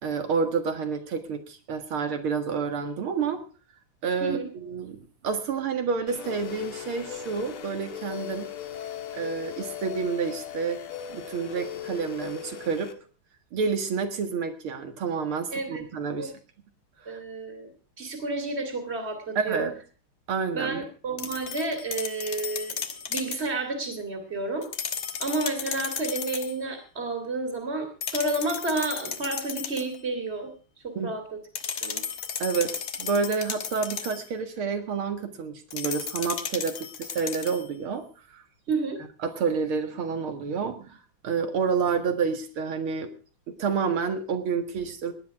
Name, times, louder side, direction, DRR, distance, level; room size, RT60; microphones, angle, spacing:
voice 1, 0.0-3.4 4.0-8.5 9.1-10.8 11.1-12.9 13.5-16.3 17.1-17.2 19.4-19.7 20.3-20.8 31.0-31.1 32.4-38.0 38.3-38.4 39.2-41.0 41.2-43.1 43.5-45.1, right 5 dB, 75° right, 7 dB, 2.6 m, -29 dB
sound 1, 6.1-12.9, left 9 dB, 90° left, 2.3 m, -38 dB
voice 2, 15.5-15.8 16.2-16.3 17.1-17.7 18.0-19.6 20.5-22.8 23.1-24.7 25.2-30.5 30.8-31.3 31.8-32.0 38.7-39.0, right 2 dB, 30° right, 4 dB, 2.7 m, -30 dB
sound 2, 21.2-23.5 24.6-26.6 28.0-30.0 31.6-34.3 35.7-37.7, left 7 dB, 65° left, 2.1 m, -34 dB
18.0 x 10.5 x 4.8 m, 0.38 s
omnidirectional pair, 2.3 m